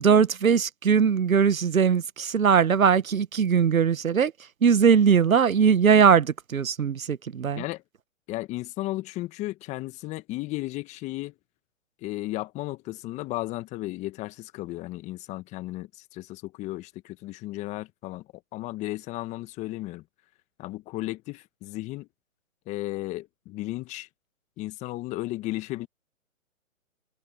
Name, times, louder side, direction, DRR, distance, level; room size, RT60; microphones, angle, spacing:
voice 1, 0.0-4.3 4.6-7.6, right 7 dB, 75° right, 1.2 m, -20 dB
voice 2, 8.3-11.3 12.0-18.2 18.5-20.0 20.6-22.1 22.7-24.1 24.6-25.9, left 18 dB, 15° left, 1.6 m, -34 dB
hypercardioid pair, 140°, 42 cm